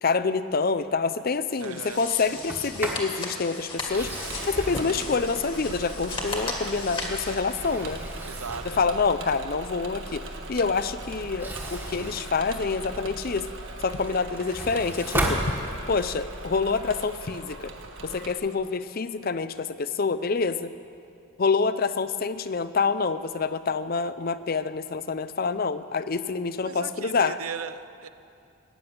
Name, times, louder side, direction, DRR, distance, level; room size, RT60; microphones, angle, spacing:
voice 1, 0.0-4.1 4.4-8.0 8.7-10.2 10.5-13.5 13.8-15.4 15.9-17.7 18.0-20.7 21.4-27.4, left 4 dB, 45° left, 13 dB, 0.5 m, -27 dB
sound 1, 1.5-7.4, left 2 dB, 25° left, 1.9 m, -36 dB
voice 2, 1.6-2.0 8.2-9.0 26.6-28.1, right 6 dB, 85° right, 13 dB, 0.6 m, -38 dB
Sliding door, 2.3-3.1 3.8-6.1 6.7-8.8 11.2-13.2 13.6-16.1, right 1 dB, 10° right, 1.6 m, -34 dB
Engine / Mechanisms, 3.9-18.3, right 2 dB, 60° right, 1.5 m, -39 dB
18.5 x 9.7 x 7.9 m, 2.5 s
head